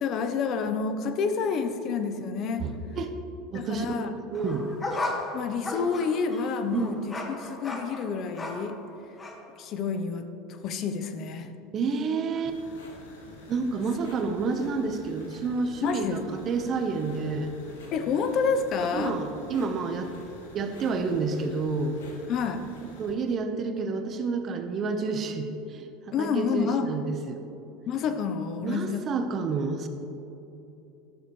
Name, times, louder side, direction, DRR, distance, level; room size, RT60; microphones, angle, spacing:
voice 1, 0.0-2.7 3.5-4.1 5.3-8.8 9.6-11.5 15.8-16.4 17.9-19.1 22.3-22.6 26.1-26.9 27.9-29.0, left 5 dB, 50° left, 8 dB, 0.8 m, -29 dB
voice 2, 2.6-3.1 3.5-4.0 4.3-4.7 6.7-6.9 11.7-12.6 13.5-17.5 18.9-20.1 20.5-22.0 23.0-25.9 26.2-27.4 28.6-29.9, right 4 dB, 40° right, 6 dB, 1.1 m, -29 dB
sound 1, 4.3-8.8 9.2-9.4, left 2 dB, 25° left, 1.8 m, -35 dB
sound 2, 12.5-23.1, left 2 dB, 90° left, 2.1 m, -48 dB
12.0 x 11.5 x 3.2 m, 3.0 s
hypercardioid pair, 90°, 0 cm